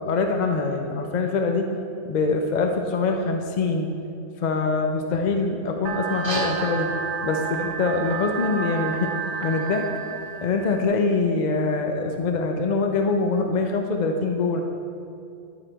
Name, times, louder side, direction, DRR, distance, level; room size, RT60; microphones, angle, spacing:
voice 1, 0.0-1.7 2.0-3.9 4.4-6.9 7.2-9.1 9.4-9.9 10.4-14.6, left 4 dB, 60° left, 4 dB, 0.4 m, -24 dB
sound 1, 5.8-10.8, right 6 dB, 60° right, 0.8 m, -31 dB
sound 2, 6.0-11.0, right 1 dB, 20° right, 1.1 m, -39 dB
12.5 x 4.8 x 4.5 m, 2.6 s
omnidirectional pair, 1.5 m